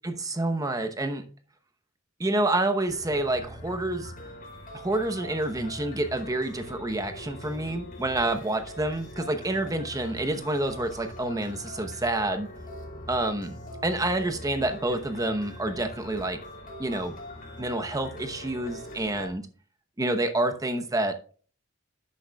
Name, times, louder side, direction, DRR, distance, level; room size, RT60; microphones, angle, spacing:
voice 1, 0.0-1.2 2.2-4.1 4.7-12.5 13.1-16.4 16.8-17.2 17.6-19.4 20.0-21.2, right 2 dB, 20° right, 0.9 m, -28 dB
sound 1, 2.9-19.3, left 1 dB, 45° left, 2.9 m, -42 dB
11.5 x 8.5 x 2.3 m
head